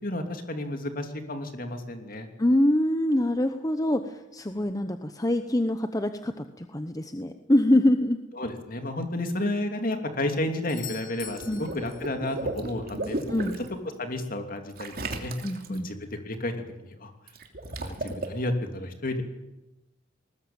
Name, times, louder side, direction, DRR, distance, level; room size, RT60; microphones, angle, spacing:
voice 1, 0.0-2.3 8.3-13.2 14.0-15.3 15.7-16.5 16.8-17.1 17.8-19.2, left 1 dB, 50° left, 6 dB, 2.9 m, -31 dB
voice 2, 2.4-8.2 11.5-11.6 13.3-13.6 15.4-15.9, left 1 dB, 20° left, 8 dB, 0.9 m, -25 dB
Doorbell, 10.7-12.5 16.6-16.7, left 8 dB, 90° left, 3.0 m, -44 dB
Water / Liquid, 11.2-13.7 14.8-15.8 17.3-18.3, right 2 dB, 50° right, 3.0 m, -34 dB
20.0 x 18.5 x 8.8 m, 0.99 s
head